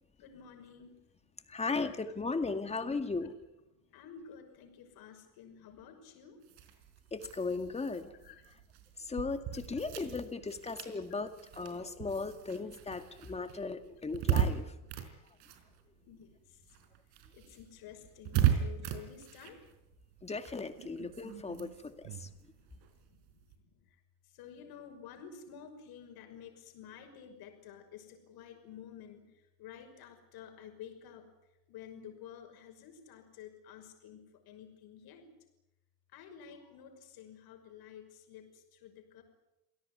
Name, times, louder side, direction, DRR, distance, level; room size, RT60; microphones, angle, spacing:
voice 1, 0.2-1.0 1.8-1.9 3.8-6.4 8.2-8.4 14.8-15.4 16.0-16.9 17.3-19.6 22.1-24.0 24.3-31.3 31.7-35.3 36.1-39.2, left 8 dB, 60° left, 5 dB, 6.0 m, -52 dB
voice 2, 1.5-3.4 7.1-8.1 9.0-14.7 20.2-22.3, left 4 dB, 15° left, 8 dB, 2.1 m, -37 dB
sound 1, 6.4-16.3 16.6-23.6, right 10 dB, 65° right, 4.5 m, -37 dB
27.5 x 17.5 x 9.5 m, 0.93 s
cardioid pair, 135°, 42 cm